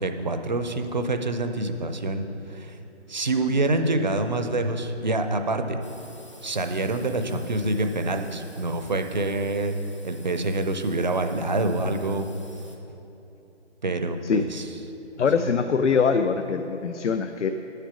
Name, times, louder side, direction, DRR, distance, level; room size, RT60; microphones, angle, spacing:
voice 1, 0.0-2.2 2.5-2.8 3.1-5.8 6.4-9.7 10.0-12.3 13.8-14.7 15.4-15.5, right 2 dB, 40° right, 7 dB, 0.5 m, -26 dB
sound 1, 5.8-12.8, left 1 dB, 25° left, 0.5 m, -51 dB
voice 2, 15.2-17.5, left 5 dB, 85° left, 8 dB, 0.5 m, -23 dB
9.2 x 6.6 x 4.9 m, 3.0 s
figure-of-eight pair, 160°, 35 cm